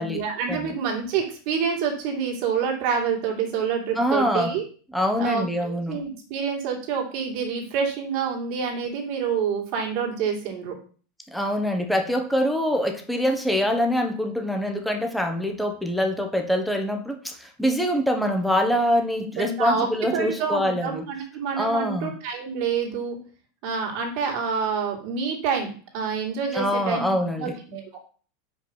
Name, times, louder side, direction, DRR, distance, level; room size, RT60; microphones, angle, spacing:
voice 1, 0.0-4.6 5.2-10.7 19.2-23.2 23.6-27.9, right 6 dB, 60° right, 1 dB, 2.5 m, -27 dB
voice 2, 4.0-4.5 4.9-6.0 11.3-21.0 21.6-22.1 26.5-27.6, equal, ahead, 3 dB, 1.2 m, -24 dB
5.3 x 4.9 x 5.5 m, 0.41 s
hypercardioid pair, 115°, 0 cm